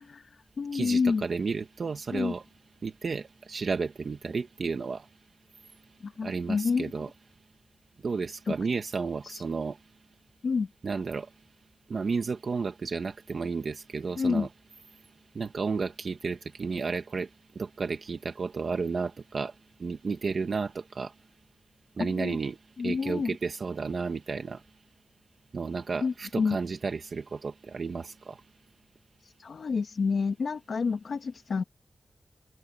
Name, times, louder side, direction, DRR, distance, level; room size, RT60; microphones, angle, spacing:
voice 1, 0.2-1.2 2.1-2.3 6.0-6.9 8.5-8.6 9.2-9.4 10.4-10.7 14.2-14.5 22.0-22.4 22.8-23.3 26.0-26.6 29.2-31.6, left 5 dB, 70° left, 1.7 m, -29 dB
voice 2, 0.7-2.4 2.8-5.1 6.2-7.1 8.0-9.8 10.8-11.3 11.9-14.5 15.3-17.3 17.5-19.5 19.8-21.1 22.0-22.6 22.8-24.6 25.5-28.4, right 4 dB, 60° right, 1.6 m, -32 dB
open air
wide cardioid pair, 110°, 0 cm